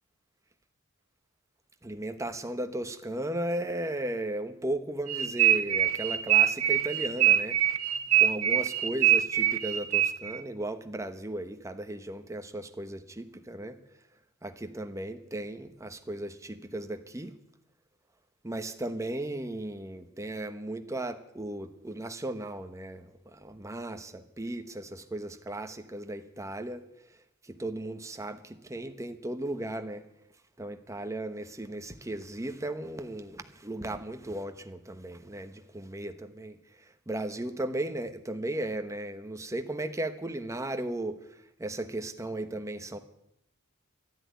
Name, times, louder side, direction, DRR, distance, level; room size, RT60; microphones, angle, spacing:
voice 1, 1.8-7.6 8.2-13.8 14.4-17.3 18.4-26.8 27.4-30.0 30.6-43.0, right 1 dB, 15° right, 8 dB, 1.1 m, -36 dB
sound 1, 5.1-10.4, right 11 dB, 85° right, 1.2 m, -24 dB
12.5 x 10.5 x 9.4 m, 0.80 s
head